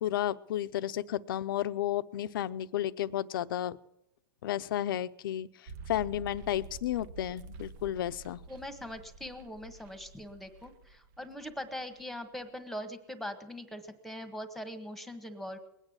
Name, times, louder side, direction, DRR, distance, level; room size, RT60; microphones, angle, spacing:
voice 1, 0.0-3.8 4.4-5.5 5.9-8.4, left 12 dB, 70° left, 14 dB, 0.7 m, -32 dB
sound 1, 5.7-12.2 12.4-12.5, right 4 dB, 50° right, 1.0 m, -48 dB
voice 2, 8.5-15.6, left 1 dB, ahead, 10 dB, 1.5 m, -41 dB
21.0 x 9.2 x 7.2 m, 0.84 s
supercardioid pair, 145°, 12 cm